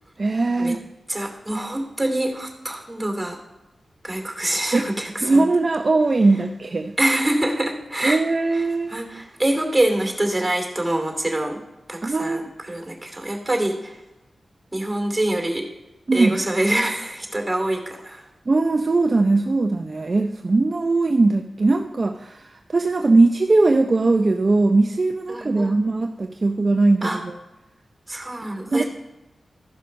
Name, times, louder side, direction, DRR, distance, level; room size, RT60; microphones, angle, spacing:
voice 1, 0.2-0.9 4.7-4.9 5.2-6.9 8.0-9.1 12.0-12.4 16.1-16.4 18.5-27.3 28.7-28.8, right 3 dB, 50° right, 5 dB, 0.5 m, -20 dB
voice 2, 1.1-3.4 4.0-5.5 7.0-8.2 8.5-8.6 8.9-11.6 11.9-14.0 14.7-15.7 16.1-18.2 25.3-25.8 27.0-27.2 28.1-28.8, right 1 dB, 20° right, 3 dB, 2.6 m, -25 dB
14.0 x 5.6 x 5.2 m, 1.0 s
cardioid pair, 50°, 0 cm